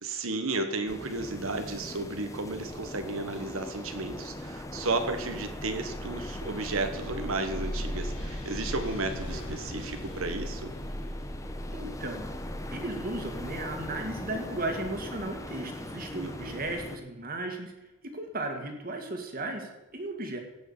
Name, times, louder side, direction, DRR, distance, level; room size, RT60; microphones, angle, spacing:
voice 1, 0.0-10.7 16.1-16.6, right 3 dB, 75° right, 7 dB, 1.3 m, -33 dB
sound 1, 0.9-17.0, left 1 dB, 15° left, 0.9 m, -41 dB
sound 2, 5.1-15.2, equal, 80° left, 4.7 m, -39 dB
voice 2, 11.7-17.7 18.0-20.4, right 2 dB, 45° right, 4 dB, 2.1 m, -35 dB
17.0 x 6.3 x 7.2 m, 0.99 s
head